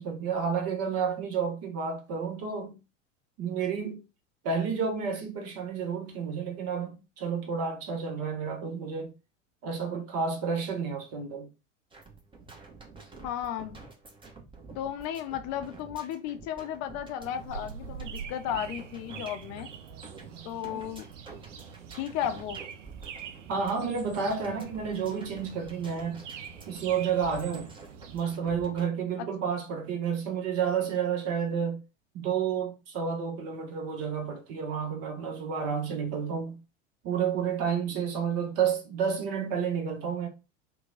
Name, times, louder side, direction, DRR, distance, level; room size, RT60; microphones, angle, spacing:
voice 1, 0.0-2.8 3.4-4.0 4.4-9.1 9.6-11.5 23.5-26.2 26.7-27.7 28.1-31.8 32.1-36.6 37.0-40.3, right 6 dB, 40° right, 0.9 m, -30 dB
sound 1, 11.9-28.8, right 4 dB, 15° right, 0.9 m, -49 dB
voice 2, 13.2-13.8 14.7-19.7 20.4-21.1 21.9-22.6 29.2-29.3, left 10 dB, 45° left, 0.6 m, -34 dB
sound 2, 17.2-28.4, right 7 dB, 75° right, 0.5 m, -45 dB
2.9 x 2.2 x 3.7 m
figure-of-eight pair, 80°, 37 cm